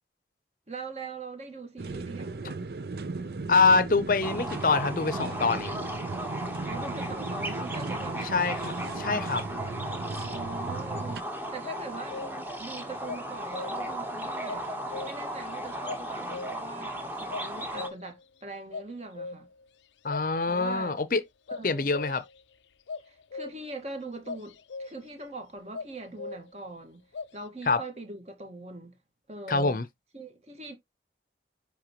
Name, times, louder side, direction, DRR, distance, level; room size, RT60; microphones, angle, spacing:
voice 1, 0.7-2.7 6.7-8.3 10.3-14.6 15.0-19.5 20.4-21.0 21.5-21.9 23.0-27.0 27.3-29.0 29.3-29.8 30.1-30.7, right 3 dB, 35° right, 1.7 m, -42 dB
sound 1, 1.8-11.2, right 3 dB, 60° right, 0.6 m, -36 dB
voice 2, 3.5-5.8 8.3-9.5 20.0-21.2 21.6-22.2 27.7-27.8 29.5-29.8, left 4 dB, 50° left, 0.6 m, -25 dB
sound 2, 4.2-17.9, equal, 10° right, 1.2 m, -36 dB
sound 3, 10.9-11.2 11.6-12.6 13.1-14.0 14.5-15.4 15.9-16.8 17.3-18.2 18.7-19.7 20.1-21.0 21.5-22.4 22.9-23.8 24.3-25.1 25.7-26.7 27.1-27.3, left 4 dB, 90° left, 0.5 m, -40 dB
10.0 x 3.5 x 3.0 m
head